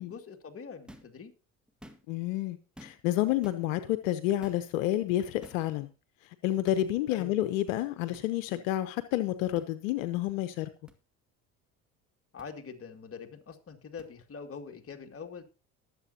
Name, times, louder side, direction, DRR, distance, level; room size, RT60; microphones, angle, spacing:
voice 1, 0.0-1.3 7.1-7.3 12.3-15.4, left 5 dB, 35° left, 2.4 m, -44 dB
sound 1, 0.9-1.2 1.7-2.2 2.8-3.1 3.4-3.6 4.4-4.7 5.4-5.7 6.7-6.8 8.1-8.3 9.5-9.7 10.9-11.0 12.4-12.5 14.0-14.1, equal, ahead, 1.9 m, -52 dB
voice 2, 2.1-5.9 6.2-10.7, left 14 dB, 80° left, 0.9 m, -30 dB
21.0 x 7.7 x 2.8 m
hypercardioid pair, 65°, 39 cm